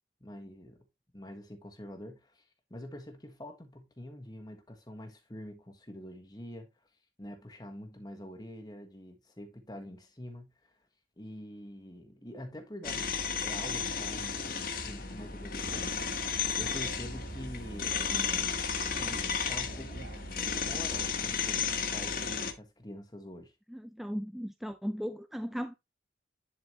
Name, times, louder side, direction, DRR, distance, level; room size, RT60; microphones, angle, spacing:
voice 1, 0.2-0.8 1.1-6.7 7.2-10.8 11.2-13.1 13.4-16.3 16.5-18.1 18.9-20.2 20.7-23.5, left 1 dB, 20° left, 1.4 m, -46 dB
sound 1, 12.8-22.5, left 6 dB, 50° left, 1.6 m, -33 dB
Musical instrument, 15.6-21.2, right 2 dB, 85° right, 1.3 m, -46 dB
voice 2, 18.1-18.5 23.7-25.7, equal, ahead, 0.4 m, -37 dB
11.0 x 4.7 x 2.9 m
head